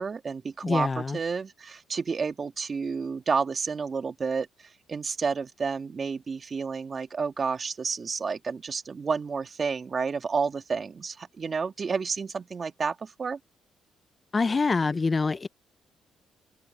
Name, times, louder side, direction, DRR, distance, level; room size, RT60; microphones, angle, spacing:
voice 1, 0.0-13.4, right 5 dB, 40° right, 2.0 m, -30 dB
voice 2, 0.6-1.2 14.3-15.5, left 4 dB, 30° left, 0.6 m, -25 dB
cardioid pair, 90°, 0 cm